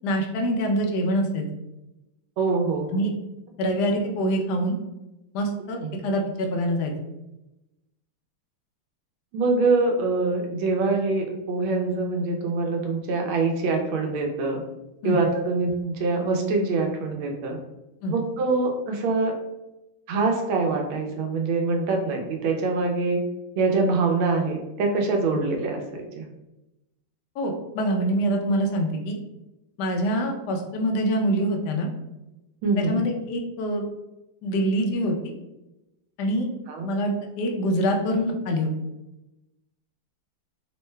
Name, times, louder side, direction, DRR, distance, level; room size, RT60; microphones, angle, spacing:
voice 1, 0.0-1.4 2.9-3.1 3.6-4.7 5.3-5.8 6.0-6.9 15.0-15.2 18.0-18.1 25.3-25.4 27.4-29.2 29.8-31.9 32.8-33.8 34.4-35.3 36.2-36.5 36.9-38.7, equal, 75° left, 2 dB, 1.0 m, -25 dB
voice 2, 2.4-2.9 5.8-6.0 9.3-14.6 15.0-17.6 18.1-19.3 20.1-23.2 23.6-26.3 32.6-33.0 36.7-36.9, right 3 dB, 80° right, 2 dB, 1.4 m, -24 dB
3.7 x 2.1 x 3.1 m, 0.96 s
omnidirectional pair, 2.2 m